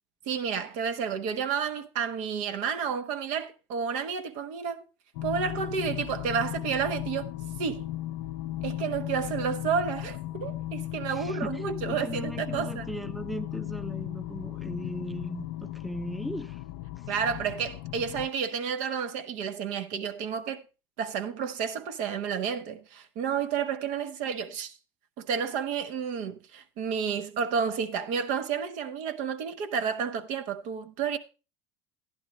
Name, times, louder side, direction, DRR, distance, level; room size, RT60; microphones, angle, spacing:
voice 1, 0.3-4.8 5.2-7.3 7.6-7.9 8.6-12.9 17.1-20.6 21.0-24.7 25.2-31.2, right 7 dB, 70° right, 0.8 m, -31 dB
sound 1, 5.1-18.3, left 14 dB, 75° left, 0.4 m, -36 dB
voice 2, 11.1-16.6 17.0-17.1, equal, ahead, 0.6 m, -38 dB
11.0 x 10.5 x 3.1 m
supercardioid pair, 90°, 13 cm